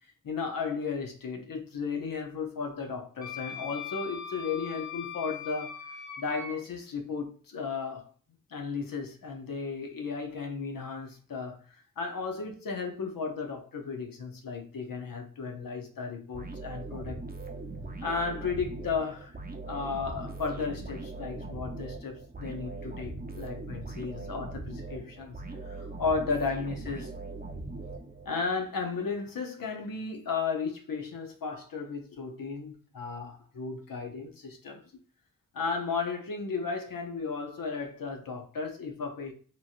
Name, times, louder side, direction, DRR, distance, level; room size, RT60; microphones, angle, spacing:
voice 1, 0.2-5.8 6.2-8.1 8.5-11.6 12.0-17.2 18.0-19.3 19.7-27.1 28.2-34.8 35.5-39.3, left 5 dB, 75° left, 0.7 m, -34 dB
Wind instrument woodwind instrument, 3.2-6.6, left 7 dB, 55° left, 1.1 m, -40 dB
sound 1, 16.3-28.5, right 3 dB, 25° right, 0.6 m, -40 dB
3.0 x 2.7 x 2.4 m
cardioid pair, 40°, 34 cm